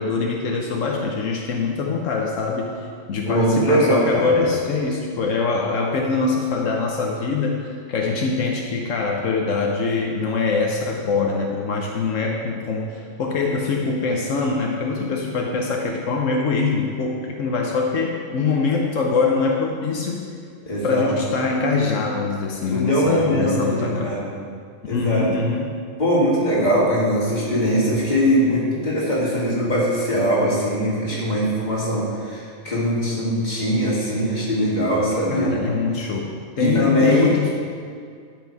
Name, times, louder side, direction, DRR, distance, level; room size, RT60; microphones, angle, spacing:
voice 1, 0.0-20.2 20.8-24.2 24.9-25.7 35.3-37.5, left 4 dB, 85° left, 0 dB, 1.2 m, -23 dB
voice 2, 3.3-4.3 20.7-21.1 22.7-24.3 24.9-25.2 26.0-35.5 36.6-37.3, equal, 35° left, -6 dB, 2.5 m, -21 dB
11.5 x 6.7 x 4.7 m, 2.2 s
omnidirectional pair, 1.3 m